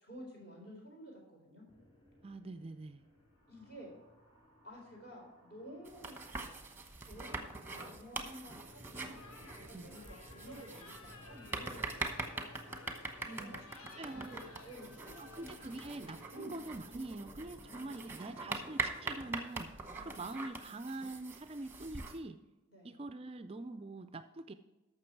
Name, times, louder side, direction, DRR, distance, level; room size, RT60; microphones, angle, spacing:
voice 1, 0.0-1.6 3.5-3.9 4.6-6.2 7.0-12.6 13.3-16.0 16.3-16.5 17.6-18.6 19.9-20.2 22.7-23.0, equal, 45° left, -1 dB, 3.9 m, -52 dB
sound 1, 1.7-19.2, left 1 dB, 25° left, 3.7 m, -60 dB
voice 2, 2.2-3.1 9.7-9.9 13.2-13.6 14.0-14.4 15.2-19.7 20.0-22.4 22.8-24.5, right 2 dB, 25° right, 11 dB, 0.3 m, -44 dB
sound 2, 5.8-22.2, right 4 dB, 10° right, 1.0 m, -43 dB
sound 3, 9.1-16.4, left 3 dB, 80° left, 1.2 m, -56 dB
14.0 x 6.0 x 4.6 m, 1.1 s
head